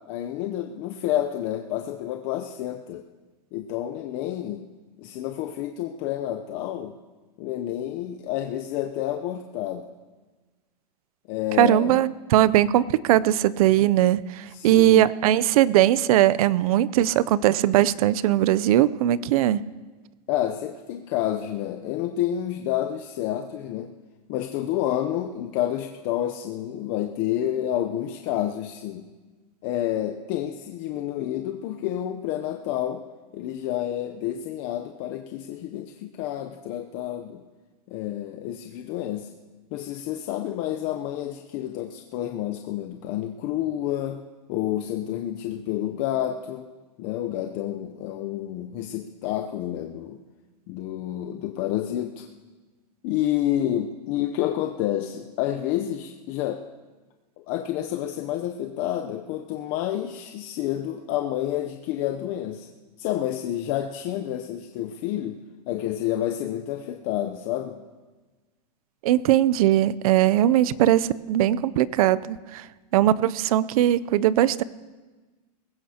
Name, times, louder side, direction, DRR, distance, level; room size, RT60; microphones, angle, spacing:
voice 1, 0.1-3.1 3.5-4.6 5.0-7.0 7.4-9.9 11.3-12.0 14.5-15.1 20.3-23.9 24.3-29.0 29.6-33.0 33.3-37.4 37.9-39.3 39.7-44.2 44.5-46.7 47.0-50.2 50.7-52.3 53.0-56.6 57.5-62.7 63.0-65.4 65.7-67.8, left 12 dB, 40° left, 5 dB, 0.7 m, -29 dB
voice 2, 11.6-19.6 69.0-72.6 72.9-74.6, right 13 dB, 60° right, 19 dB, 0.6 m, -20 dB
20.5 x 16.5 x 2.9 m, 1.3 s
supercardioid pair, 140°, 21 cm